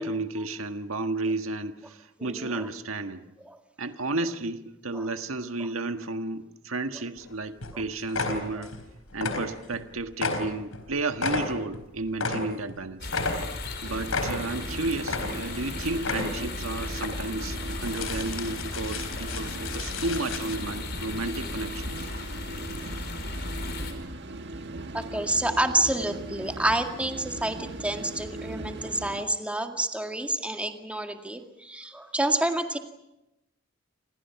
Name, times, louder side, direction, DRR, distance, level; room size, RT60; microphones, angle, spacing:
voice 1, 0.0-3.2 3.8-8.7 9.1-13.1 13.8-22.3, right 2 dB, 85° right, 8 dB, 1.6 m, -32 dB
voice 2, 2.2-2.7 3.4-3.6 4.9-5.1 7.7-7.8 8.6-8.7 24.9-32.8, right 1 dB, 5° right, 5 dB, 2.0 m, -29 dB
sound 1, 7.2-7.3 7.6-7.8 8.1-8.8 9.1-9.8 10.1-12.8 13.1-13.7 14.1-14.7 15.0-15.6 16.0-16.5 16.9-17.1 17.6-20.6, left 3 dB, 85° left, 4.4 m, -32 dB
sound 2, 13.0-23.9, left 3 dB, 55° left, 4.7 m, -36 dB
sound 3, 13.8-29.2, right 2 dB, 55° right, 1.7 m, -39 dB
29.0 x 26.5 x 5.9 m, 0.88 s
head